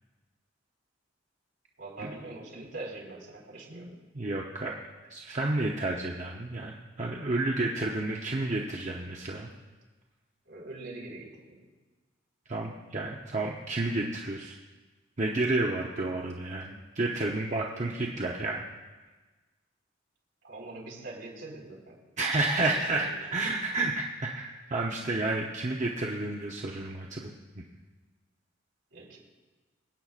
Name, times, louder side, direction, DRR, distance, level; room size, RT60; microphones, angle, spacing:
voice 1, 1.8-3.9 10.4-11.6 20.4-22.0 22.6-23.2 28.9-29.2, right 2 dB, 75° right, -4 dB, 4.2 m, -43 dB
voice 2, 4.1-4.7 5.1-9.5 12.5-14.6 15.2-18.7 22.2-27.6, right 2 dB, 40° right, -1 dB, 0.8 m, -31 dB
26.0 x 8.6 x 2.5 m, 1.3 s
head